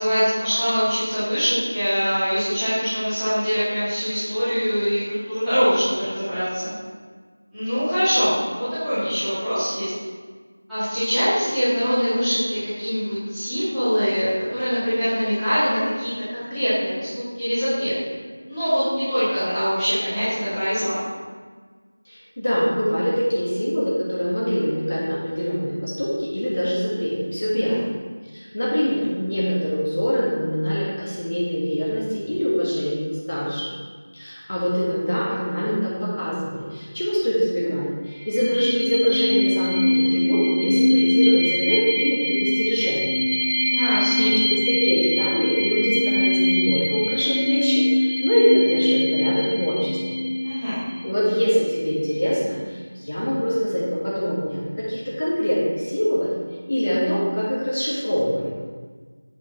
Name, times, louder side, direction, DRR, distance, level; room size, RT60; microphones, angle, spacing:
voice 1, 0.0-6.7 7.5-9.9 10.7-18.1 18.4-21.0 27.6-27.7 43.6-44.3 50.4-50.7, equal, ahead, -27 dB, 2.0 m, -23 dB
voice 2, 22.0-27.8 28.3-33.7 34.1-43.2 43.8-50.2 51.0-56.3 56.7-58.5, equal, 40° left, -6 dB, 1.6 m, -23 dB
sound 1, 38.1-51.5, left 1 dB, 15° left, 1.8 m, -22 dB
7.5 x 7.5 x 3.0 m, 1.5 s
figure-of-eight pair, 175°, 0 cm